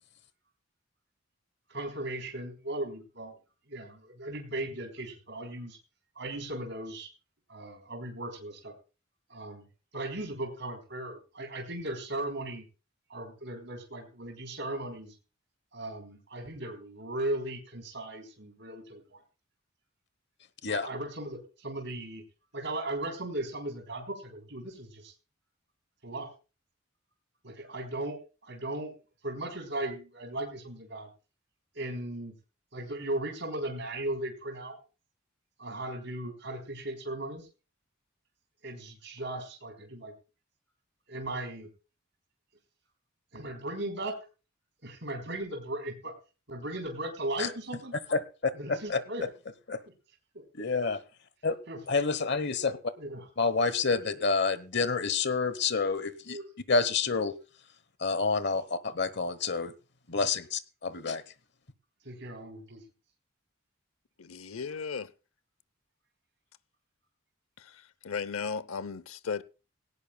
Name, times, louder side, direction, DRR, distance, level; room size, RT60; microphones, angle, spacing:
voice 1, 1.7-3.3 3.7-5.8 6.2-7.1 7.5-8.7 9.3-9.6 9.9-12.6 13.1-15.1 15.7-19.2 20.7-22.2 22.5-25.1 26.0-26.3 27.4-28.2 28.4-28.9 29.2-31.1 31.7-32.3 32.7-34.8 35.6-37.5 38.6-40.1 41.1-41.7 43.3-44.2 44.8-46.1 46.5-47.9 48.5-49.2 50.3-50.4 51.7-51.8 53.0-53.3 56.3-56.5 62.0-62.8, right 1 dB, 60° right, 3.7 m, -37 dB
voice 2, 48.7-49.0 49.7-49.8 50.6-51.0 51.4-51.6 51.9-52.8 53.4-56.4 56.7-57.3 58.0-59.7 60.1-61.2, left 4 dB, 55° left, 1.1 m, -28 dB
voice 3, 64.2-65.1 67.6-69.4, left 5 dB, 85° left, 0.7 m, -36 dB
17.5 x 17.5 x 2.3 m
head